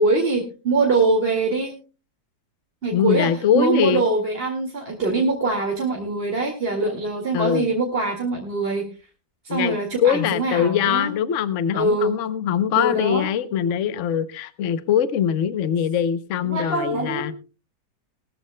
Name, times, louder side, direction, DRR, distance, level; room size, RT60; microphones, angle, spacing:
voice 1, 0.0-1.7 2.8-8.9 9.4-11.1 11.7-12.2 12.8-13.3 16.4-17.3, right 3 dB, 35° right, 0 dB, 2.3 m, -23 dB
voice 2, 2.9-4.0 7.3-7.7 9.5-17.3, left 9 dB, 55° left, 13 dB, 1.0 m, -22 dB
20.5 x 14.0 x 2.2 m, 0.33 s
omnidirectional pair, 1.8 m